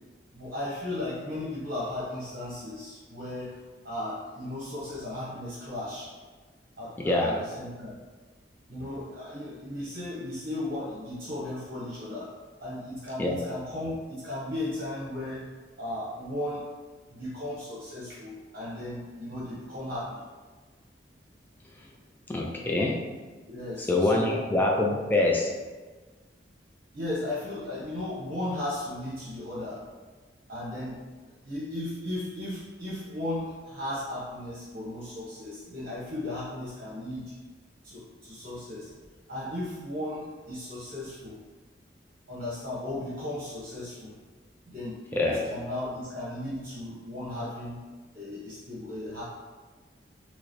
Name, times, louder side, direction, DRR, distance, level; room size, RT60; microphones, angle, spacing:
voice 1, 0.3-3.6 3.8-6.1 6.8-8.0 8.7-12.3 12.6-15.5 15.8-16.7 17.1-20.2 23.5-24.4 26.9-29.8 30.5-31.0 31.4-37.3 37.8-38.9 39.3-41.4 42.3-44.1 44.7-45.0 45.2-47.8 48.1-49.2, left 1 dB, 55° right, -8 dB, 1.0 m, -36 dB
voice 2, 7.0-7.4 13.2-13.4 22.3-23.1 23.9-25.5 45.1-45.4, left 2 dB, 10° left, -1 dB, 0.3 m, -25 dB
4.6 x 2.1 x 3.1 m, 1.3 s
head